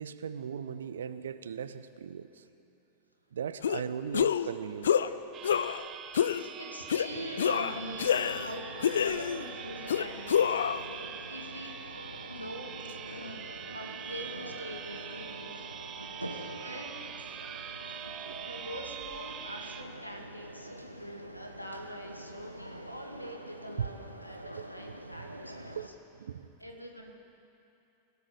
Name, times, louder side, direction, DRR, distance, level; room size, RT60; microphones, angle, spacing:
voice 1, 0.0-2.4 3.3-5.0 18.3-18.4 23.8-23.9 24.6-25.3 25.8-25.9 26.2-26.5, right 7 dB, 65° right, 13 dB, 0.8 m, -38 dB
sound 1, 3.6-3.8 4.1-4.5 4.8-5.1 5.4-5.8 6.1-6.4 6.9-7.1 7.4-8.5 8.8-9.4 9.9-10.8, left 8 dB, 65° left, 0.6 m, -27 dB
sound 2, 5.3-19.8, right 8 dB, 30° right, 1.0 m, -44 dB
voice 2, 6.6-11.7 12.3-12.7 13.1-15.7 16.4-17.0 17.9-18.0 18.4-25.8 26.6-27.1, equal, 90° left, 1 dB, 2.4 m, -44 dB
sound 3, 7.1-25.9, right 1 dB, 90° right, 1.1 m, -46 dB
28.5 x 18.0 x 5.1 m, 2.8 s
figure-of-eight pair, 90°, 0 cm